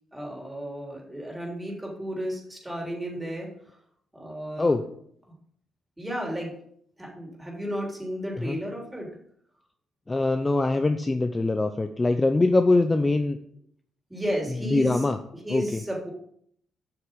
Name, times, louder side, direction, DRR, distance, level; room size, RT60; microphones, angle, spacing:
voice 1, 0.1-3.8 4.1-4.8 6.0-6.5 7.0-9.1 14.1-15.1 15.3-16.1, equal, 10° right, -2 dB, 3.4 m, -33 dB
voice 2, 10.1-13.4 14.7-15.2 15.5-15.8, left 2 dB, 20° left, 7 dB, 0.6 m, -23 dB
8.0 x 6.0 x 5.3 m, 0.66 s
cardioid pair, 90°, 0 cm